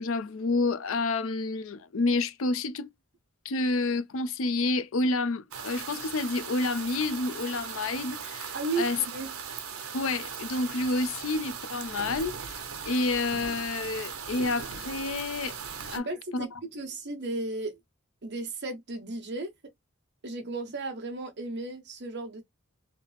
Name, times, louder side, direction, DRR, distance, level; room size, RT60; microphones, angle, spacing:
voice 1, 0.0-2.9 3.4-9.0 9.9-15.6 15.9-16.1 16.3-16.5, left 3 dB, 70° left, 0.5 m, -29 dB
sound 1, 5.5-16.0, right 6 dB, 80° right, 0.8 m, -39 dB
voice 2, 8.5-9.4 15.9-17.8 18.2-19.5 20.2-22.4, right 2 dB, 55° right, 1.0 m, -35 dB
3.2 x 2.8 x 3.2 m
head